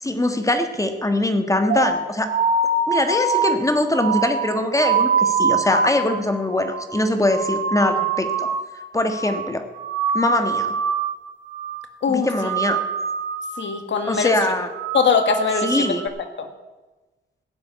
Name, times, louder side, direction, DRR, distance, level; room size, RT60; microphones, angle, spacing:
voice 1, 0.0-2.3 2.9-8.5 8.9-9.6 10.1-10.7 12.1-12.8 14.0-14.7 15.6-16.1, left 1 dB, 15° left, 7 dB, 1.5 m, -22 dB
sound 1, 1.7-8.7 8.9-9.5 9.7-11.2 11.5-11.9 12.2-13.7 14.0-14.4 14.7-16.1, right 4 dB, 80° right, 2.7 m, -24 dB
voice 2, 12.0-12.5 13.6-14.6 14.9-15.9 16.4-16.5, left 5 dB, 85° left, 7 dB, 1.8 m, -22 dB
16.0 x 7.5 x 9.5 m, 1.2 s
wide cardioid pair, 115°, 19 cm